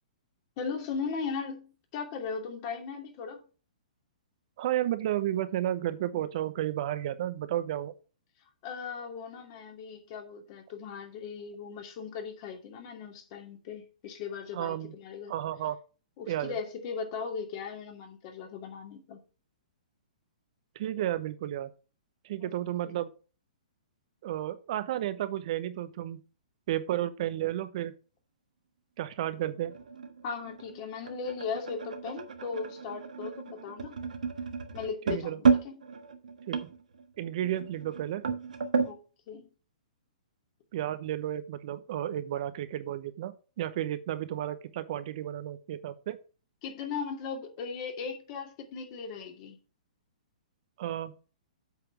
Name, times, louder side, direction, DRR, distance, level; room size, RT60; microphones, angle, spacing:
voice 1, 0.6-3.4 8.6-15.3 16.2-19.2 22.4-22.5 22.8-23.0 30.2-34.0 34.7-35.8 38.8-39.0 39.3-39.4 46.6-49.6, left 5 dB, 40° left, 2.5 m, -38 dB
voice 2, 4.6-7.9 14.5-14.9 15.3-15.8 16.3-16.5 20.7-21.7 22.2-23.1 24.2-26.2 26.7-27.9 29.0-29.7 35.1-35.4 36.5-36.7 37.2-38.3 40.7-46.2 50.8-51.1, right 12 dB, 50° right, 0.8 m, -32 dB
sound 1, 29.2-39.0, right 5 dB, 75° right, 1.5 m, -32 dB
8.0 x 4.9 x 5.9 m
hypercardioid pair, 120°, 4 cm